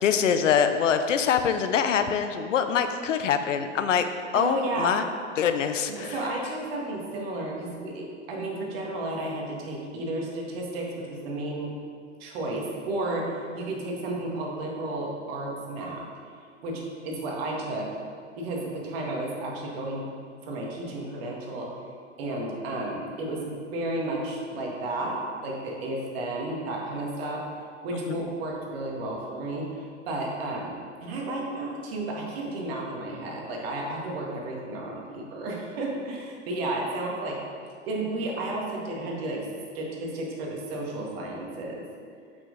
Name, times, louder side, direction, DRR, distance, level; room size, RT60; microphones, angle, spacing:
voice 1, 0.0-4.0 4.3-5.0 5.4-6.2 28.1-28.2, left 7 dB, 80° left, 9 dB, 0.7 m, -24 dB
voice 2, 4.3-4.9 5.9-11.7 12.2-16.1 16.6-17.9 18.4-20.1 20.4-21.7 22.2-27.4 27.8-30.7 31.0-37.4 37.9-39.5 39.7-41.8, right 2 dB, 55° right, -1 dB, 1.9 m, -32 dB
7.6 x 6.0 x 3.9 m, 2.2 s
hypercardioid pair, 115°, 37 cm